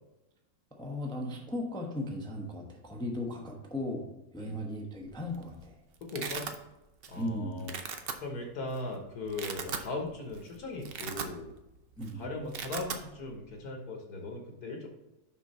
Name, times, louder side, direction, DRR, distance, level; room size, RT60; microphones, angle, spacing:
voice 1, 0.7-5.8 7.2-7.7 12.0-12.3, left 1 dB, 5° left, 1 dB, 0.6 m, -37 dB
Domestic sounds home sounds, 5.1-5.4 5.7-6.6 7.0-7.3 7.6-8.1 8.8-8.9 9.2-9.9 10.3-10.4 10.7-11.7 11.9-12.1 12.4-13.0, right 6 dB, 70° right, 0.5 m, -38 dB
voice 2, 6.0-6.5 7.1-7.8 8.2-11.5 12.1-14.9, left 2 dB, 65° left, 2 dB, 1.6 m, -38 dB
6.1 x 5.5 x 4.1 m, 0.96 s
omnidirectional pair, 1.9 m